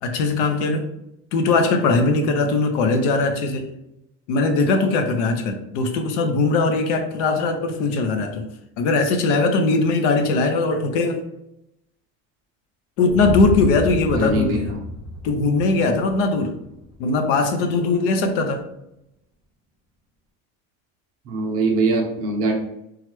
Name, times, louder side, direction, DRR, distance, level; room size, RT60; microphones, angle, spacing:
voice 1, 0.0-0.9 1.3-3.7 4.3-8.5 8.8-11.2 13.0-14.7 15.2-16.5 17.0-18.6, left 3 dB, 75° left, 6 dB, 0.6 m, -20 dB
sound 1, 13.1-17.1, left 2 dB, 15° left, 0.5 m, -30 dB
voice 2, 14.1-14.6 21.2-22.5, right 2 dB, 35° right, 0 dB, 0.6 m, -22 dB
3.1 x 2.3 x 3.1 m, 0.83 s
cardioid pair, 170°, 39 cm